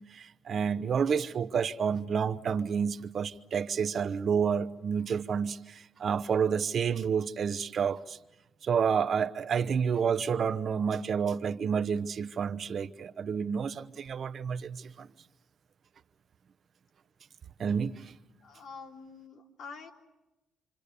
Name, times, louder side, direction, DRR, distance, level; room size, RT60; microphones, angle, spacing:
voice 1, 0.0-8.2 8.6-15.1 17.6-18.2, right 6 dB, 55° right, 0.9 m, -29 dB
voice 2, 18.4-19.9, left 5 dB, 65° left, 3.8 m, -46 dB
28.5 x 26.5 x 6.9 m
cardioid pair, 90°, 0 cm